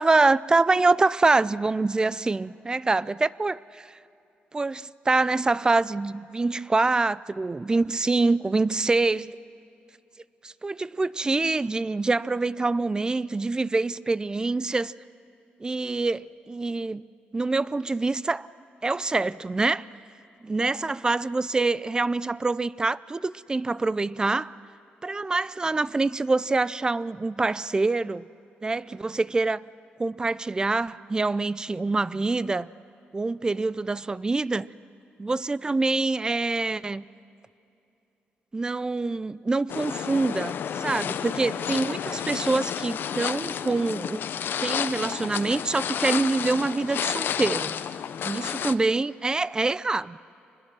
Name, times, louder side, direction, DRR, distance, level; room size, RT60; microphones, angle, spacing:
voice 1, 0.0-4.0 4.5-9.4 10.4-14.9 15.6-17.0 17.3-18.5 18.8-19.9 20.5-24.5 25.0-28.3 28.6-29.7 30.0-32.7 33.1-34.7 35.2-37.0 38.5-44.2 44.6-47.8 48.2-50.3, right 3 dB, 20° right, 0.4 m, -25 dB
sound 1, 39.7-48.7, left 8 dB, 70° left, 0.6 m, -31 dB
25.5 x 21.0 x 6.2 m
cardioid pair, 110°, 4 cm